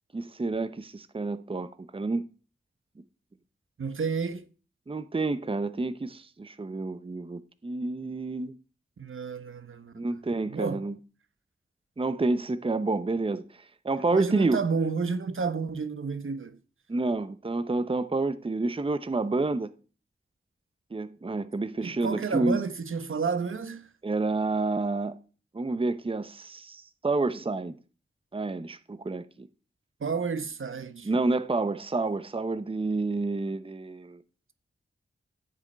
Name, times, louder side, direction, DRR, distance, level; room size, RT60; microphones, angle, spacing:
voice 1, 0.1-2.3 4.9-8.6 10.0-10.9 12.0-14.6 16.9-19.7 20.9-22.6 24.0-25.2 25.5-27.7 28.3-29.5 31.0-34.2, right 3 dB, 25° right, 0.8 m, -29 dB
voice 2, 3.8-4.5 9.0-10.1 10.5-10.8 14.1-16.6 21.8-23.9 30.0-31.1, right 5 dB, 75° right, 1.3 m, -31 dB
14.5 x 5.8 x 8.6 m
wide cardioid pair, 105°, 21 cm